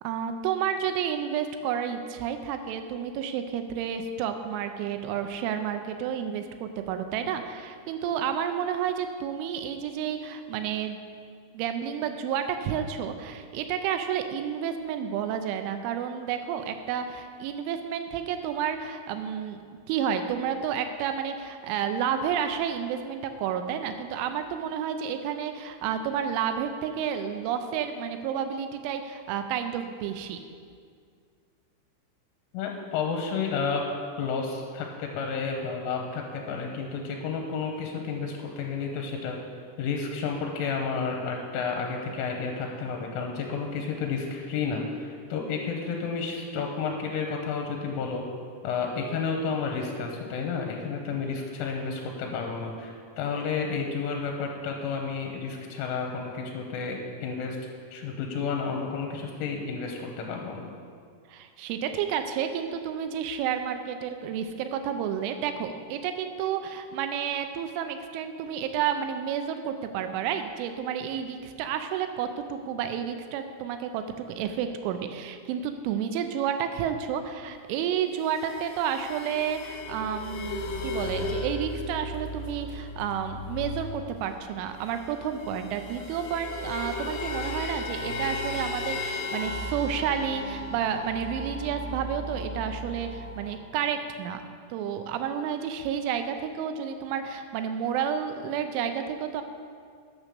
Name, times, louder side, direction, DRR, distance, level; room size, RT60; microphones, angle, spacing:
voice 1, 0.0-11.0 11.5-19.6 19.9-30.4 61.3-94.4 94.7-99.4, right 8 dB, 80° right, 8 dB, 3.0 m, -30 dB
voice 2, 32.5-33.8 34.2-39.4 39.8-48.2 48.6-57.6 57.9-60.7, left 5 dB, 85° left, 1 dB, 3.3 m, -31 dB
sound 1, 78.2-84.0 84.3-84.4 84.6-93.5, left 2 dB, 65° left, 3.6 m, -35 dB
9.6 x 6.8 x 6.3 m, 2.2 s
omnidirectional pair, 5.7 m